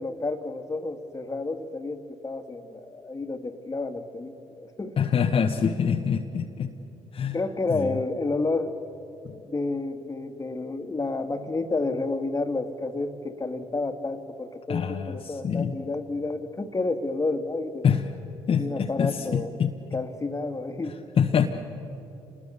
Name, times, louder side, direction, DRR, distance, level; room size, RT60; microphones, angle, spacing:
voice 1, 0.0-5.0 7.3-8.8 9.4-17.8 18.6-19.5 19.9-21.0, left 3 dB, 25° left, 7 dB, 1.9 m, -30 dB
voice 2, 5.0-6.7 7.1-7.4 7.7-7.9 9.2-9.4 14.7-15.8 17.8-18.1 18.5-20.0 20.8-21.5, left 7 dB, 45° left, 3 dB, 1.1 m, -25 dB
27.0 x 20.5 x 6.9 m, 2.9 s
hypercardioid pair, 50°, 13 cm